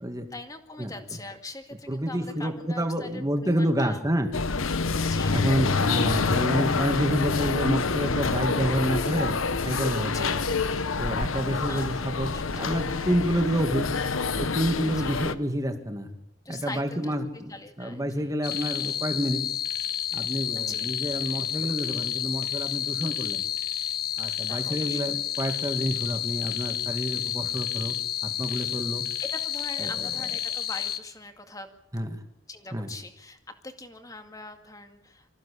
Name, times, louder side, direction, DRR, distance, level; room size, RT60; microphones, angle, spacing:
voice 1, 0.3-4.0 5.0-5.4 10.0-10.4 11.7-12.7 14.9-15.2 16.5-17.1 17.5-18.4 20.6-21.0 24.5-25.0 29.2-31.7 32.5-33.4 33.6-35.3, left 2 dB, 15° left, 6 dB, 2.1 m, -42 dB
voice 2, 1.9-4.3 5.3-10.4 11.0-13.9 14.4-16.1 16.5-19.4 20.1-23.4 24.2-28.0 28.2-29.1 29.8-30.1 31.9-32.2 32.7-32.9, equal, 15° right, 6 dB, 2.2 m, -28 dB
sound 1, 4.3-15.3, left 4 dB, 80° left, 1.1 m, -27 dB
sound 2, 18.4-31.0, left 11 dB, 50° left, 1.4 m, -30 dB
26.0 x 15.0 x 8.6 m, 0.85 s
head